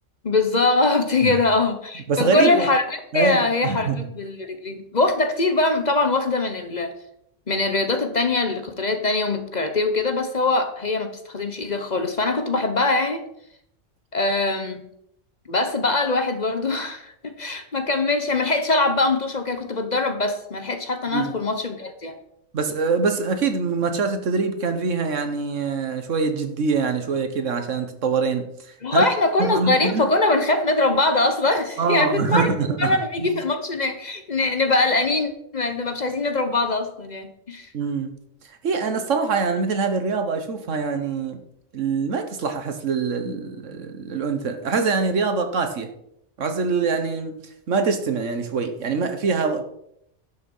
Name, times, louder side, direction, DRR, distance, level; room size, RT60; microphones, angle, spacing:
voice 1, 0.2-6.9 7.5-13.2 14.1-14.9 15.5-22.2 28.8-32.5 32.8-37.7, left 2 dB, 40° left, 7 dB, 1.0 m, -22 dB
voice 2, 2.1-2.7 3.1-4.0 21.1-21.3 22.5-28.4 28.9-29.0 29.4-30.1 31.8-33.3 37.7-38.1 38.6-41.4 41.7-45.9 46.4-47.4 47.7-49.6, right 4 dB, 80° right, 7 dB, 1.5 m, -24 dB
11.5 x 6.5 x 5.5 m, 0.74 s
omnidirectional pair, 1.3 m